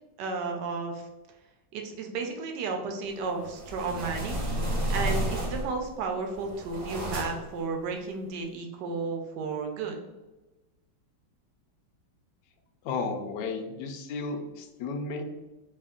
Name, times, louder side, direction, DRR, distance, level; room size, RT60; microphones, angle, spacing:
voice 1, 0.2-1.1 1.7-4.4 4.9-10.0, right 4 dB, 75° right, 3 dB, 1.0 m, -33 dB
sound 1, 3.4-5.9 6.3-7.6, right 1 dB, 50° right, 0.6 m, -31 dB
voice 2, 12.8-15.2, left 4 dB, 75° left, 5 dB, 0.9 m, -33 dB
3.4 x 2.4 x 3.5 m, 1.1 s
omnidirectional pair, 2.3 m